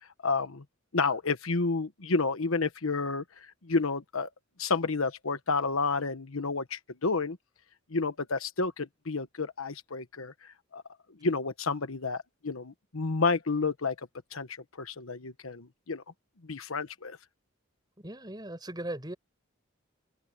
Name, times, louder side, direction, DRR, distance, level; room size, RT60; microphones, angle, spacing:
voice 1, 0.2-0.6 0.9-4.3 4.6-7.4 7.9-10.8 11.2-13.9 14.3-16.0 16.4-17.2, left 4 dB, 80° left, 1.2 m, -30 dB
voice 2, 18.0-19.2, right 1 dB, 20° right, 6.2 m, -38 dB
head